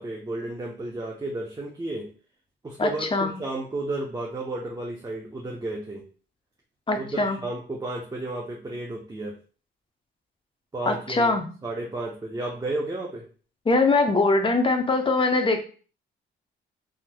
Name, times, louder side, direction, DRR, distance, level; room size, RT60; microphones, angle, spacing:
voice 1, 0.0-2.1 2.6-6.0 6.9-9.3 10.7-11.3 11.6-13.3, right 2 dB, 20° right, -2 dB, 0.7 m, -32 dB
voice 2, 2.8-3.3 6.9-7.4 10.9-11.4 13.7-15.6, left 3 dB, 25° left, 5 dB, 0.7 m, -22 dB
3.4 x 2.8 x 2.2 m, 0.38 s
cardioid pair, 90°, 20 cm